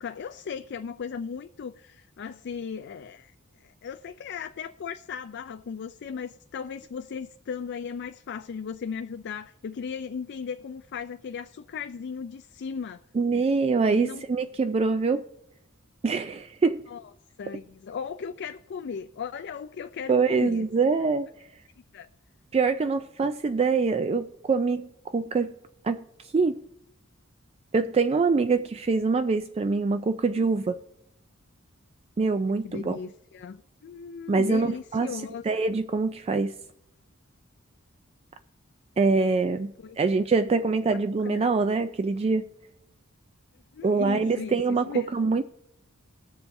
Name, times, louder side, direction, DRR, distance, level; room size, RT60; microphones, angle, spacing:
voice 1, 0.0-3.3 3.6-13.0 13.9-14.2 16.9-17.0 17.4-20.7 21.9-22.1 32.6-35.7 39.8-40.0 41.2-41.5 43.7-45.1, left 6 dB, 55° left, 0.4 m, -37 dB
voice 2, 13.1-15.2 16.0-16.8 20.1-21.3 22.5-25.5 25.8-26.6 27.7-30.8 32.2-33.0 34.3-36.5 39.0-42.4 43.8-45.4, right 4 dB, 30° right, 0.3 m, -24 dB
20.0 x 7.0 x 2.6 m
head